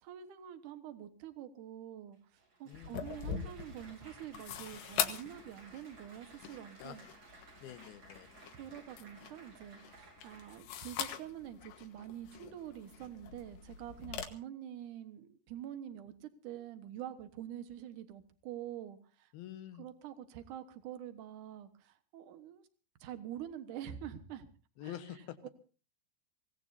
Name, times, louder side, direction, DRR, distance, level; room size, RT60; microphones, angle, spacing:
voice 1, 0.0-7.0 8.5-19.3 19.8-22.7 23.0-24.5 24.8-25.5, right 11 dB, 65° right, 9 dB, 2.3 m, -46 dB
Applause, 2.1-10.6, right 3 dB, 40° right, 3.7 m, -58 dB
sound 1, 2.7-14.2, left 8 dB, 90° left, 3.7 m, -43 dB
voice 2, 7.6-8.3 19.3-19.9 24.8-25.4, left 12 dB, 70° left, 9 dB, 2.9 m, -46 dB
25.0 x 17.5 x 2.7 m, 0.38 s
omnidirectional pair, 4.9 m